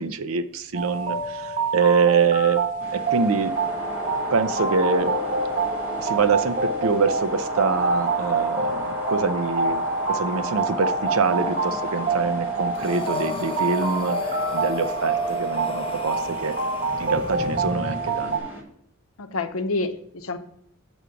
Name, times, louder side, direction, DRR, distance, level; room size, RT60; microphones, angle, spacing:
voice 1, 0.0-2.7 2.9-3.6 4.3-5.2 6.0-9.8 10.1-16.6 17.0-18.4, right 5 dB, 75° right, 11 dB, 0.6 m, -25 dB
sound 1, 0.7-18.4, right 3 dB, 40° right, 1.4 m, -27 dB
sound 2, 2.8-18.6, left 1 dB, 10° right, 1.5 m, -33 dB
Breathing, 12.7-17.7, left 4 dB, 25° left, 0.4 m, -37 dB
voice 2, 19.2-20.4, left 3 dB, 80° left, 8 dB, 0.7 m, -28 dB
6.2 x 5.1 x 6.7 m, 0.69 s
head